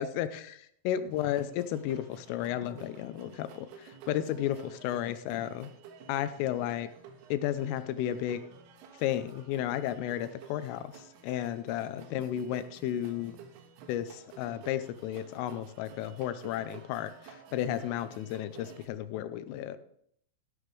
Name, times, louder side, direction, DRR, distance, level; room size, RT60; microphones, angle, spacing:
voice 1, 0.0-5.7 6.1-6.9 7.3-8.4 9.0-13.4 13.9-19.8, left 11 dB, 85° left, 12 dB, 3.2 m, -33 dB
sound 1, 1.1-18.9, right 6 dB, 80° right, 3.9 m, -52 dB
13.5 x 11.5 x 3.2 m, 0.67 s
omnidirectional pair, 5.8 m